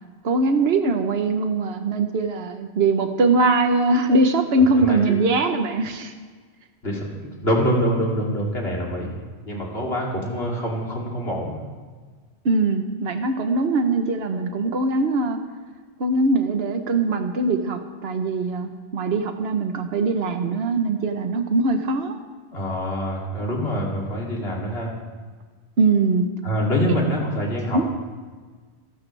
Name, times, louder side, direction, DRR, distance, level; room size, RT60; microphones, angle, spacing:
voice 1, 0.2-6.1 12.4-15.4 16.0-22.2 25.8-26.3 27.7-27.8, right 3 dB, 65° right, 6 dB, 1.3 m, -21 dB
voice 2, 4.5-5.2 6.8-9.1 9.4-11.6 22.5-24.9 26.4-27.9, equal, 65° left, -3 dB, 3.4 m, -25 dB
28.5 x 12.5 x 3.4 m, 1.5 s
omnidirectional pair, 1.1 m